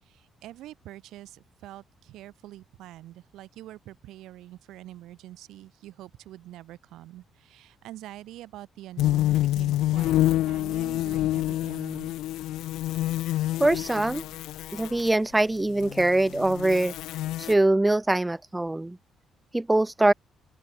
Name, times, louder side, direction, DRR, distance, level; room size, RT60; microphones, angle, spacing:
voice 1, 0.0-12.2, right 14 dB, 85° right, 7.6 m, -45 dB
sound 1, 9.0-15.1 15.7-17.5, left 14 dB, 85° left, 2.4 m, -27 dB
voice 2, 13.6-14.2 14.7-16.9 17.4-19.0 19.5-20.1, right 2 dB, 15° right, 0.4 m, -23 dB
open air
cardioid pair, 90°, 0 cm